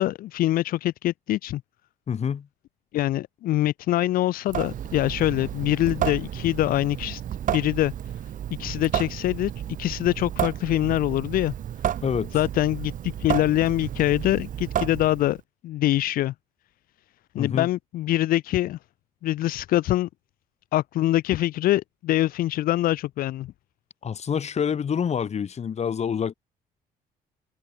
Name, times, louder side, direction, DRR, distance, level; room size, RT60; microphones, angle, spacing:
voice 1, 0.0-1.6 2.9-7.2 7.5-7.9 8.6-9.5 9.8-11.5 12.3-15.4 15.6-16.3 17.3-18.8 19.2-20.1 20.7-23.5, left 15 dB, 75° left, 0.9 m, -24 dB
voice 2, 2.1-2.5 12.0-12.3 17.4-17.7 24.0-26.3, left 7 dB, 45° left, 3.1 m, -27 dB
Water tap faucet / Sink (filling or washing) / Drip, 4.5-15.4, right 10 dB, 60° right, 2.9 m, -31 dB
cardioid pair, 85°, 15 cm